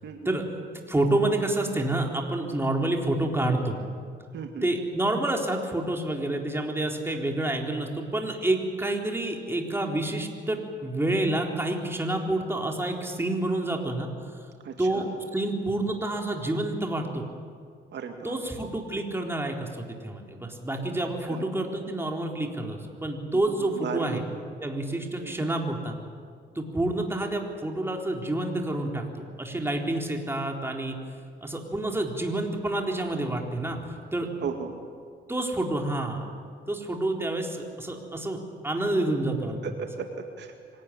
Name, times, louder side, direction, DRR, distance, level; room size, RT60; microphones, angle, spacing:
voice 1, 0.9-3.8 4.6-14.1 14.8-17.3 18.2-24.2 24.6-26.0 26.6-31.0 31.4-34.3 35.3-36.3 36.7-39.6, right 1 dB, 10° right, 1 dB, 3.9 m, -28 dB
voice 2, 4.3-4.7 14.6-15.0 17.9-18.4 21.3-21.4 23.5-24.2 25.2-25.5 34.4-34.7 39.6-40.5, right 6 dB, 65° right, 4 dB, 2.2 m, -35 dB
25.5 x 17.5 x 10.0 m, 2.2 s
cardioid pair, 90°, 20 cm